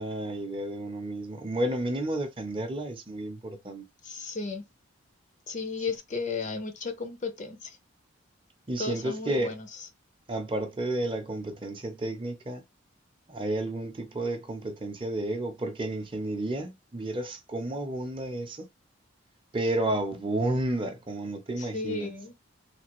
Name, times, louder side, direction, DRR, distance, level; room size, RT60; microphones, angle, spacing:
voice 1, 0.0-3.8 8.7-9.5 10.3-12.6 13.3-18.7 19.5-22.1, right 1 dB, 25° right, 0.6 m, -31 dB
voice 2, 4.0-4.6 5.5-7.8 8.8-9.7 21.6-22.3, left 4 dB, 35° left, 0.5 m, -34 dB
3.3 x 2.2 x 2.9 m
head